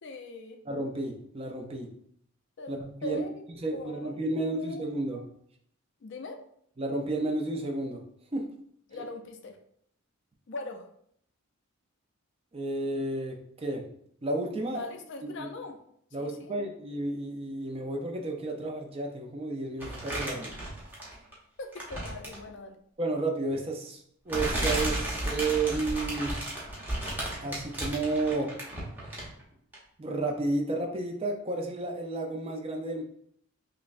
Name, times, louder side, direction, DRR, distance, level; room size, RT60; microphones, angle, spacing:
voice 1, 0.0-0.6 2.6-3.4 3.7-4.8 5.2-5.3 6.0-6.4 8.9-9.6 10.5-10.9 14.7-15.8 16.2-16.6 21.6-22.8, left 2 dB, 55° left, 5 dB, 0.4 m, -41 dB
voice 2, 0.7-1.9 2.7-3.2 3.6-5.2 6.8-8.0 8.3-8.5 12.5-13.9 14.2-14.8 15.2-15.5 16.1-20.5 23.0-26.4 27.4-28.6 30.0-33.0, right 2 dB, 25° right, 2 dB, 0.4 m, -32 dB
sound 1, 19.8-21.3 21.7-22.5 23.5-23.6 24.3-29.4 29.7-29.8, right 1 dB, 10° right, 0.8 m, -33 dB
5.6 x 2.1 x 2.5 m, 0.68 s
head